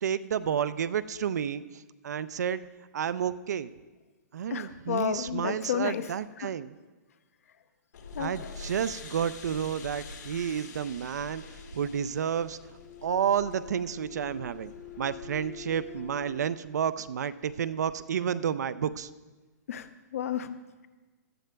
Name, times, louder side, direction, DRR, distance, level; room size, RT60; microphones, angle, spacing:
voice 1, 0.0-2.6 2.9-3.7 4.3-6.8 8.2-11.4 11.7-12.6 13.0-14.7 15.0-19.1, right 8 dB, 70° right, 14 dB, 0.4 m, -30 dB
voice 2, 4.5-6.0 8.1-8.3 19.7-20.6, left 9 dB, 55° left, 11 dB, 0.6 m, -31 dB
sound 1, 7.9-16.4, left 5 dB, 75° left, 1.5 m, -45 dB
16.5 x 12.0 x 2.3 m, 1.3 s
hypercardioid pair, 180°, 9 cm